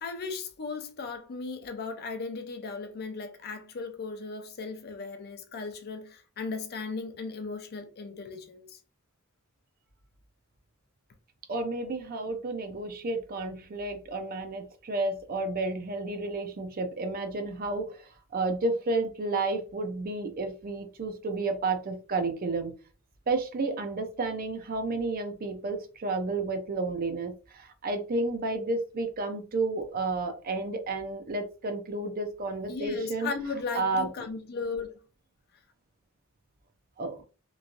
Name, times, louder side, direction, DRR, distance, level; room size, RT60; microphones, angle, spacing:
voice 1, 0.0-8.8 32.7-34.9, left 4 dB, 50° left, 0.5 m, -36 dB
voice 2, 11.5-17.9 18.3-22.7 23.3-27.3 27.8-33.3 33.7-34.1 37.0-37.2, right 3 dB, 45° right, 0.5 m, -31 dB
3.1 x 2.5 x 2.5 m
head